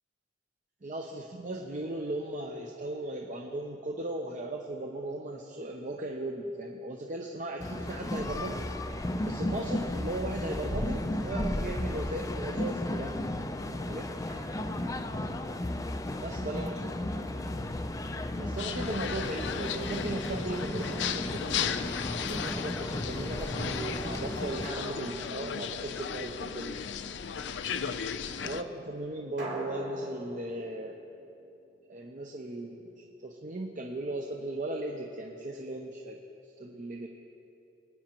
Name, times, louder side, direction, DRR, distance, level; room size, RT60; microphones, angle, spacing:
voice 1, 0.8-8.6 9.2-13.3 13.7-14.1 16.2-17.0 18.4-21.8 22.1-26.8 28.4-31.0 31.9-36.2 36.6-37.1, right 1 dB, 45° right, 1 dB, 0.7 m, -37 dB
sound 1, 7.6-24.7, left 1 dB, 20° left, 0.4 m, -34 dB
Drum, 14.3-15.0 17.0-18.0 20.8-22.0 24.6-26.3 29.4-32.4, right 1 dB, 70° right, 3.2 m, -45 dB
sound 2, 18.6-28.6, left 7 dB, 70° left, 0.5 m, -36 dB
23.5 x 9.5 x 3.0 m, 2.9 s
head